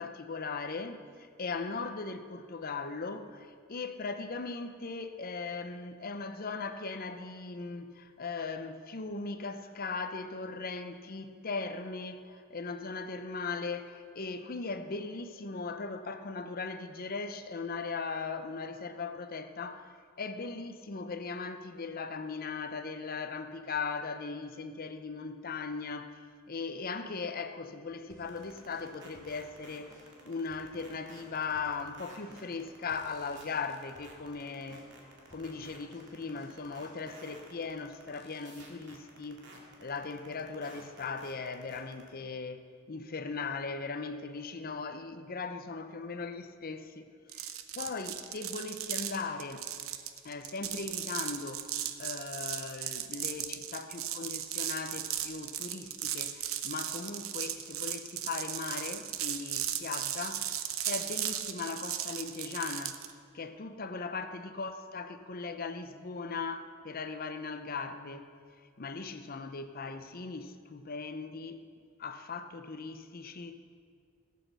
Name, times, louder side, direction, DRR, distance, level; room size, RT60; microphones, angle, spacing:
voice 1, 0.0-29.9 30.3-34.8 35.3-39.4 39.8-47.1 47.3-47.5 47.7-49.7 50.2-63.1 63.3-68.3 68.6-71.6 72.0-73.6, left 4 dB, 45° left, 9 dB, 0.7 m, -39 dB
sound 1, 28.1-37.7, left 1 dB, 20° right, 2.2 m, -59 dB
sound 2, 28.3-42.1, right 3 dB, 60° right, 2.1 m, -53 dB
sound 3, 47.3-63.1, right 11 dB, 85° right, 0.8 m, -36 dB
15.5 x 8.4 x 6.8 m, 2.1 s
head